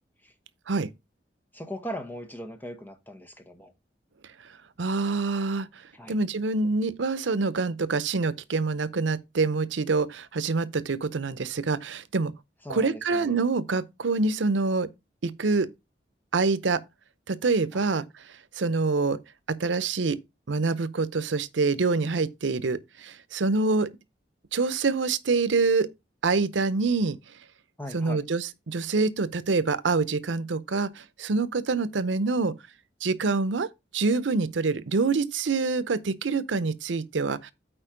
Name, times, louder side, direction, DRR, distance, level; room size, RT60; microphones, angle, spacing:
voice 1, 1.5-3.7 6.0-6.2 12.6-13.4 17.7-17.8 27.8-28.2, equal, 10° left, 1.1 m, -39 dB
voice 2, 4.8-5.7 6.1-12.3 12.7-14.9 15.2-15.7 16.3-16.8 17.3-18.0 18.6-19.2 19.5-20.2 20.5-23.9 24.5-25.9 26.2-27.2 27.9-32.5 33.0-33.7 33.9-37.5, right 4 dB, 90° right, 0.7 m, -26 dB
8.9 x 4.4 x 5.0 m
head